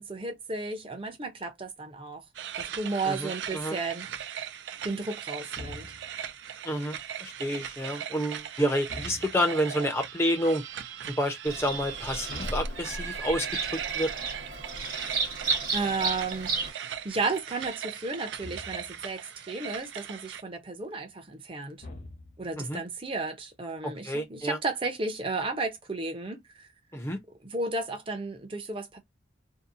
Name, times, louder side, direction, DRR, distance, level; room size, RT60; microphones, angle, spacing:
voice 1, 0.0-2.2 2.6-4.1 4.8-5.9 15.7-21.8 22.4-26.7 27.4-29.0, right 3 dB, 25° right, 0.6 m, -33 dB
sound 1, 2.3-20.4, right 9 dB, 65° right, 0.3 m, -39 dB
voice 2, 3.1-3.8 6.6-10.6 11.2-13.5 13.7-14.1 22.6-22.8 23.8-24.6 26.9-27.2, equal, 15° left, 0.6 m, -29 dB
sound 2, 5.6-6.3 8.9-9.7 12.3-13.5 18.4-19.1 21.8-22.6, left 2 dB, 40° left, 0.9 m, -45 dB
Bird vocalization bird call bird song, 11.5-16.7, right 3 dB, 45° right, 0.9 m, -33 dB
2.8 x 2.1 x 2.5 m
head